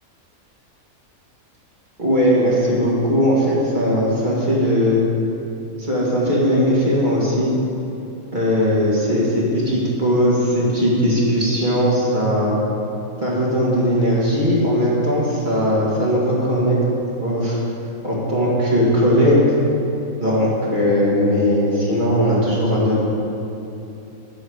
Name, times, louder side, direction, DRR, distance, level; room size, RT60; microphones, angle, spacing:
voice 1, 2.0-5.0 5.8-7.5 8.3-12.6 13.2-16.8 17.2-17.6 18.0-19.5 20.2-23.0, equal, 30° right, -6 dB, 2.2 m, -18 dB
10.5 x 4.6 x 8.0 m, 2.9 s
omnidirectional pair, 1.6 m